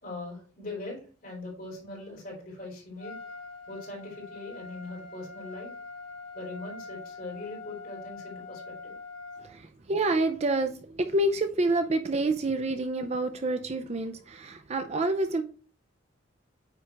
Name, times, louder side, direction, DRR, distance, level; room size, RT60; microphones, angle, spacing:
voice 1, 0.0-3.2 3.7-5.7 6.3-9.0, left 2 dB, 50° left, 4.0 m, -41 dB
Trumpet, 3.0-9.5, left 4 dB, 75° left, 2.1 m, -44 dB
voice 2, 9.4-15.4, right 2 dB, 35° right, 0.4 m, -28 dB
9.0 x 3.8 x 4.5 m
head